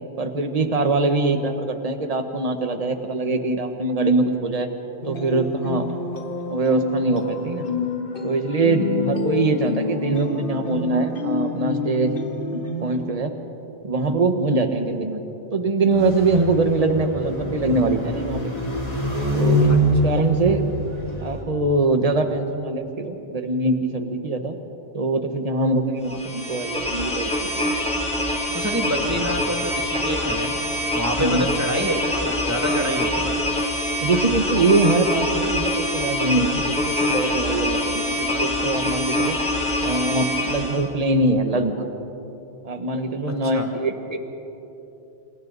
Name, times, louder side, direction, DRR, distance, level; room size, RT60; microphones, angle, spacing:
voice 1, 0.2-4.7 5.0-5.9 6.5-7.7 8.2-12.1 12.5-13.3 13.8-15.2 15.5-18.4 19.3-19.8 20.0-20.6 21.2-24.6 24.9-27.7 29.0-29.3 31.2-31.4 34.0-39.3 39.8-41.9 42.6-44.2, right 2 dB, 35° right, 6 dB, 1.4 m, -23 dB
sound 1, 5.0-13.1, left 3 dB, 60° left, 1.7 m, -29 dB
sound 2, 15.9-21.4, right 1 dB, 40° left, 4.9 m, -24 dB
sound 3, 26.0-40.8, left 1 dB, 5° left, 3.6 m, -25 dB
voice 2, 28.5-30.5 30.9-33.3 43.5-43.7, equal, 15° right, 1 dB, 2.3 m, -26 dB
28.0 x 27.5 x 4.1 m, 3.0 s
omnidirectional pair, 1.1 m